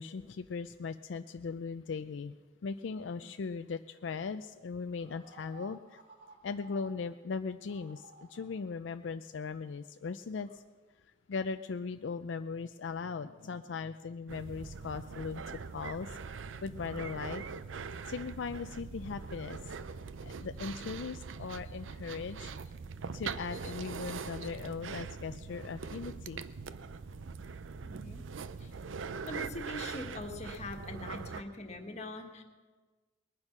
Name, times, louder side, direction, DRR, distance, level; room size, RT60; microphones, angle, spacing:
voice 1, 0.0-2.3 2.6-6.0 6.4-10.6 11.3-15.4 15.7-17.4 18.1-19.7 20.2-22.5 23.1-26.4, left 5 dB, 70° left, 9 dB, 0.4 m, -39 dB
sound 1, 5.0-6.9 7.7-8.6 10.3-10.5, right 2 dB, 60° right, 1.9 m, -55 dB
sound 2, 14.3-31.4, right 5 dB, 85° right, 0.5 m, -42 dB
voice 2, 27.8-28.2 28.6-28.7 29.3-32.4, left 2 dB, 35° left, 4 dB, 1.6 m, -42 dB
20.5 x 9.7 x 6.0 m, 1.3 s
head